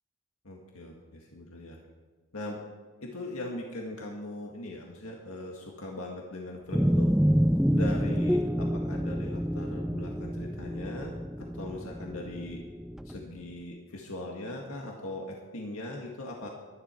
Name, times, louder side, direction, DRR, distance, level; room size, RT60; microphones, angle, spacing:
voice 1, 0.4-1.8 2.3-2.6 3.0-7.1 7.7-12.6 13.1-16.5, left 1 dB, 75° left, 0 dB, 1.9 m, -40 dB
sound 1, 6.7-13.3, equal, ahead, 0.3 m, -28 dB
22.5 x 11.0 x 4.6 m, 1.4 s
head